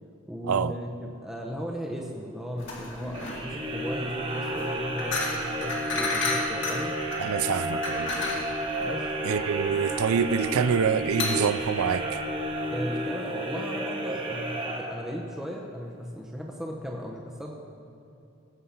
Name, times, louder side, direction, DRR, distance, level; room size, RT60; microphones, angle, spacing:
voice 1, 0.3-6.9 8.8-9.1 12.7-17.5, equal, ahead, 0.8 m, -36 dB
sound 1, 2.6-12.6, left 2 dB, 60° left, 2.1 m, -33 dB
sound 2, 3.1-15.4, right 1 dB, 25° right, 1.1 m, -32 dB
voice 2, 7.2-8.2 9.2-12.0, right 6 dB, 80° right, 0.4 m, -26 dB
16.0 x 6.5 x 5.7 m
head